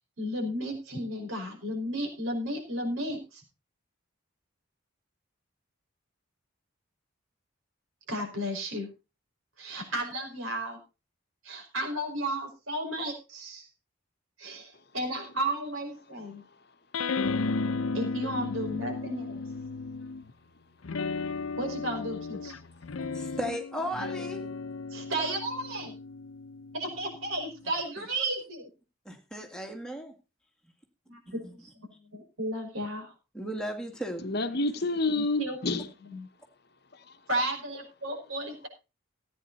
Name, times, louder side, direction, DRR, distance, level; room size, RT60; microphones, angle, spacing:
voice 1, 0.2-3.4 8.1-8.9 9.6-10.8 11.4-13.7 14.4-16.4 17.9-19.4 21.6-22.6 24.9-26.0 26.7-28.7 31.1-33.1 35.1-35.6 36.0-36.3 37.3-38.7, right 1 dB, 90° right, 5.3 m, -33 dB
sound 1, 16.9-20.3 20.8-27.6, left 4 dB, 85° left, 0.7 m, -34 dB
voice 2, 23.1-24.5 28.0-28.1 29.1-30.2 31.4-31.5 33.3-34.2, equal, 5° left, 2.1 m, -35 dB
voice 3, 34.2-35.9 37.7-38.2, left 2 dB, 50° left, 1.0 m, -30 dB
15.5 x 9.4 x 4.2 m
head